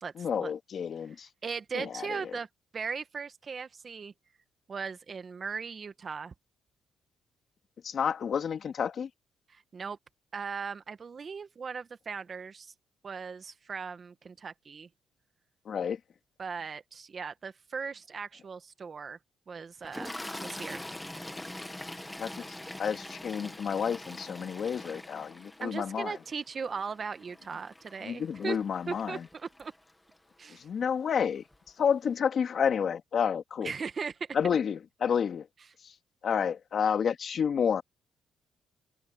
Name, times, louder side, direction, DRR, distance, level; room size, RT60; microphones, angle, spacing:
voice 1, 0.2-1.3 1.7-2.2 7.8-9.1 15.7-16.0 22.2-22.4 22.8-26.2 28.0-29.3 30.5-31.4 31.8-33.7 34.3-35.5 35.8-35.9 36.2-37.8, left 7 dB, 55° left, 2.7 m, -30 dB
voice 2, 1.4-2.5 2.7-4.1 4.7-6.3 9.5-10.0 10.3-12.7 13.0-14.9 16.4-19.2 19.5-20.1 20.4-20.8 25.6-28.6 28.9-29.7 30.4-30.7 33.6-34.4, right 5 dB, 40° right, 1.7 m, -38 dB
Toilet flush, 19.8-30.1 31.1-31.3 31.5-31.7, left 1 dB, 10° left, 2.2 m, -44 dB
cardioid pair, 90°, 0 cm